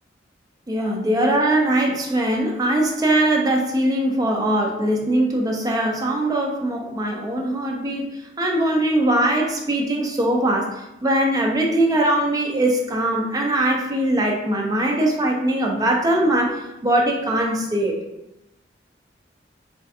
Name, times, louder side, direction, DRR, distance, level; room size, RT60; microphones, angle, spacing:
voice 1, 0.7-18.0, right 1 dB, 20° right, 1 dB, 0.3 m, -21 dB
3.2 x 2.4 x 2.6 m, 0.93 s
head